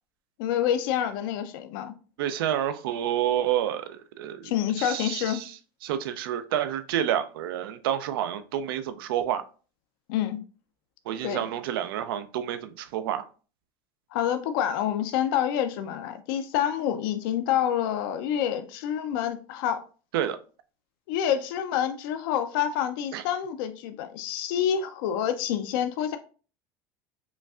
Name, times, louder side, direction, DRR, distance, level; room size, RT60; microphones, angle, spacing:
voice 1, 0.4-1.9 4.4-5.4 10.1-10.4 11.2-11.4 14.1-19.8 21.1-26.2, left 10 dB, 75° left, 0.4 m, -27 dB
voice 2, 2.2-3.9 4.2-4.5 4.8-5.5 5.8-9.4 11.1-13.3 20.1-20.4 23.1-23.2, right 10 dB, 85° right, 0.4 m, -29 dB
5.1 x 2.3 x 2.4 m
supercardioid pair, 110°, 12 cm